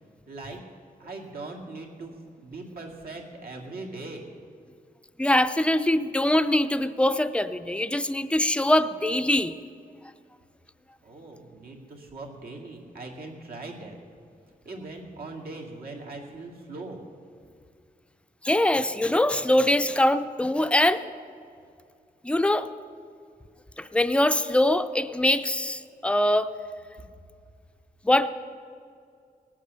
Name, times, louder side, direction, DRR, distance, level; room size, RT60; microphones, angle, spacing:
voice 1, 0.3-0.6 1.0-4.3 11.0-14.0 14.6-17.0, right 2 dB, 75° right, 0 dB, 2.3 m, -40 dB
voice 2, 5.2-9.5 18.4-21.0 22.2-22.7 23.8-26.5 28.0-28.3, left 1 dB, 5° left, 11 dB, 0.5 m, -23 dB
19.5 x 8.7 x 6.7 m, 2.3 s
wide cardioid pair, 155°, 16 cm